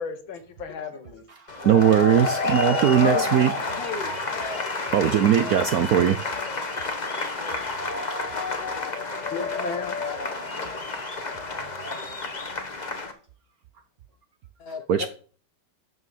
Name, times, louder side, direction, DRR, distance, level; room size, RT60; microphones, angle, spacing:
voice 1, 0.0-1.7 9.3-10.0, left 5 dB, 70° left, 9 dB, 2.0 m, -35 dB
sound 1, 1.5-13.1, left 3 dB, 25° left, 1.1 m, -29 dB
voice 2, 1.6-3.5 4.9-6.2 12.9-13.1 14.9-15.1, right 9 dB, 70° right, 10 dB, 0.9 m, -20 dB
voice 3, 3.1-4.7 5.3-5.7 14.6-15.1, left 5 dB, 55° left, 7 dB, 0.7 m, -36 dB
9.1 x 6.6 x 7.3 m, 0.43 s
omnidirectional pair, 2.2 m